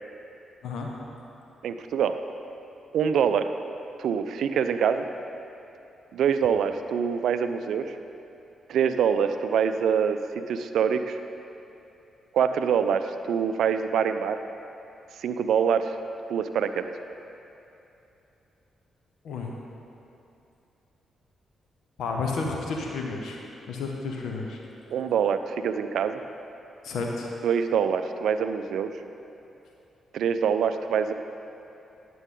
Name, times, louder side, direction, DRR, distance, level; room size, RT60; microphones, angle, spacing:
voice 1, 0.6-0.9 19.2-19.5 22.0-24.6 26.8-27.3, left 4 dB, 70° left, 0 dB, 0.8 m, -31 dB
voice 2, 1.6-2.2 2.9-3.5 4.0-5.1 6.1-8.0 8.7-11.2 12.3-14.4 15.2-16.0 16.3-16.9 24.9-26.2 27.4-28.9 30.1-31.1, right 7 dB, 70° right, 9 dB, 0.4 m, -25 dB
9.8 x 7.5 x 3.8 m, 2.9 s
hypercardioid pair, 45°, 0 cm